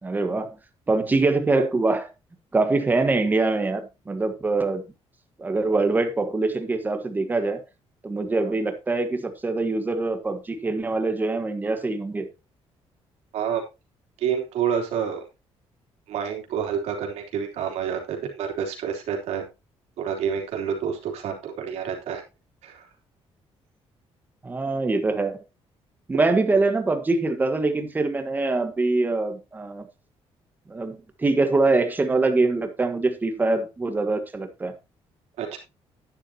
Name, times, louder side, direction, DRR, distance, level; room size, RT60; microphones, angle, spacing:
voice 1, 0.0-0.5 0.9-2.0 2.5-4.8 5.4-7.6 8.0-12.3 24.4-25.4 26.1-29.9 30.7-34.7, right 3 dB, 15° right, 1.4 m, -24 dB
voice 2, 14.2-15.2 16.1-19.4 20.0-22.2 22.6-22.9 35.4-35.6, right 8 dB, 90° right, 3.2 m, -28 dB
11.0 x 10.0 x 2.9 m
cardioid pair, 155°, 11 cm